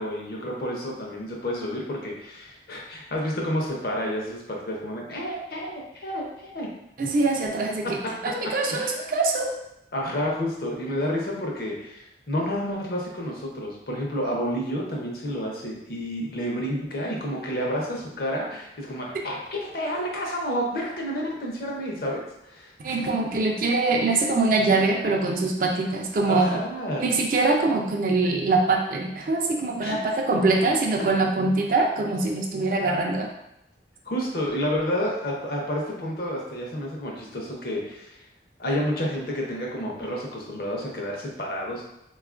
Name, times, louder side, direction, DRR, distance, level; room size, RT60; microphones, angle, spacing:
voice 1, 0.0-6.7 7.8-8.9 9.9-22.7 26.3-27.0 29.8-30.0 34.1-38.1 38.6-41.8, equal, 55° left, -2 dB, 0.6 m, -30 dB
voice 2, 7.0-9.5 22.8-26.6 27.0-33.3, right 3 dB, 50° right, 1 dB, 0.4 m, -23 dB
3.6 x 2.3 x 2.4 m, 0.85 s
head